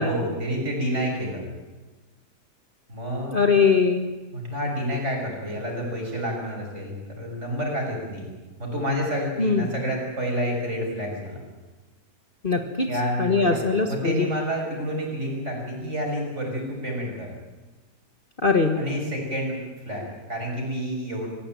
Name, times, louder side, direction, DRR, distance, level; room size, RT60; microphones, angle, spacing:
voice 1, 0.0-1.4 2.9-3.5 4.3-8.3 8.6-11.4 12.8-17.3 18.8-19.6 19.9-21.3, equal, 40° right, 0 dB, 6.9 m, -29 dB
voice 2, 3.3-4.1 9.4-9.7 12.4-12.9 13.2-14.3 18.4-18.8, left 4 dB, 30° left, 5 dB, 1.6 m, -21 dB
26.0 x 16.0 x 9.2 m, 1.2 s
omnidirectional pair, 1.8 m